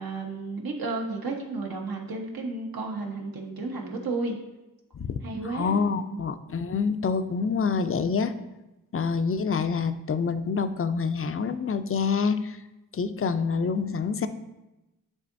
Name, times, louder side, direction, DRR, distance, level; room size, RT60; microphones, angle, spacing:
voice 1, 0.0-4.4 5.2-6.2, right 3 dB, 70° right, 1 dB, 1.2 m, -33 dB
voice 2, 5.4-8.3 8.9-12.6 12.9-14.3, left 5 dB, 35° left, 10 dB, 0.4 m, -26 dB
9.8 x 3.8 x 2.6 m, 1.0 s
cardioid pair, 45°, 37 cm